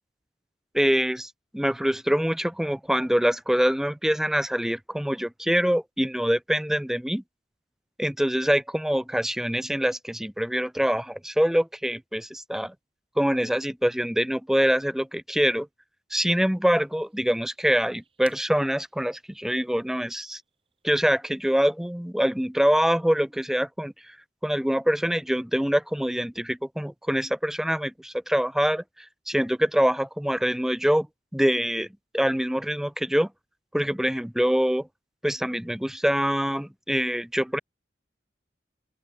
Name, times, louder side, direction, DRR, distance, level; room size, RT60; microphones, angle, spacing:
voice 1, 0.7-7.2 8.0-12.7 13.2-15.7 16.1-20.4 20.8-23.9 24.4-28.8 29.3-31.1 31.3-31.9 32.1-33.3 33.7-34.9 35.2-37.6, equal, ahead, 0.4 m, -24 dB
sound 1, 16.3-21.5, right 6 dB, 30° right, 7.3 m, -60 dB
open air
head